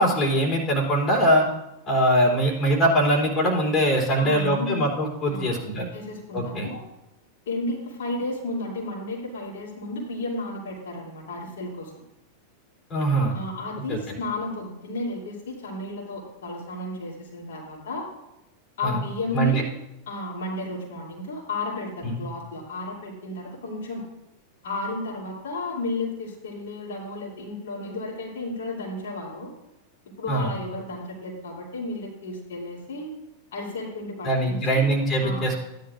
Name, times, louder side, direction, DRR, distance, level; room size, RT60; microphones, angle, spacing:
voice 1, 0.0-1.4 1.9-5.9 6.3-6.7 12.9-13.4 13.9-14.2 18.8-19.0 19.3-19.6 22.0-22.2 30.3-30.5 34.2-35.6, right 1 dB, 25° left, -1 dB, 3.3 m, -22 dB
voice 2, 4.2-4.9 5.3-5.6 5.9-6.8 7.5-11.9 13.3-18.1 18.8-19.7 20.1-24.1 24.6-29.5 30.2-33.1 33.5-34.9 35.2-35.5, left 2 dB, 60° left, -4 dB, 2.7 m, -33 dB
16.5 x 10.5 x 2.5 m, 0.92 s
figure-of-eight pair, 90°, 0 cm